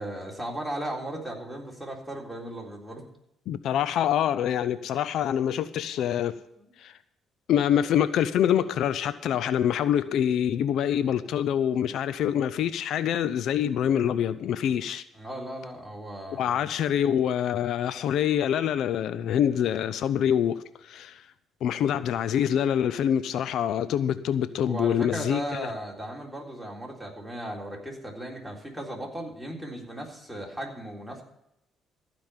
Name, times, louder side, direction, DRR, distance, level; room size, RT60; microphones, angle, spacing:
voice 1, 0.0-3.0 6.6-6.7 15.1-16.6 24.6-31.2, right 1 dB, ahead, 3.7 m, -36 dB
voice 2, 3.5-6.4 6.8-6.9 7.5-15.0 16.3-21.2 21.6-25.7, left 9 dB, 75° left, 0.5 m, -25 dB
15.0 x 5.2 x 9.1 m
cardioid pair, 80°, 0 cm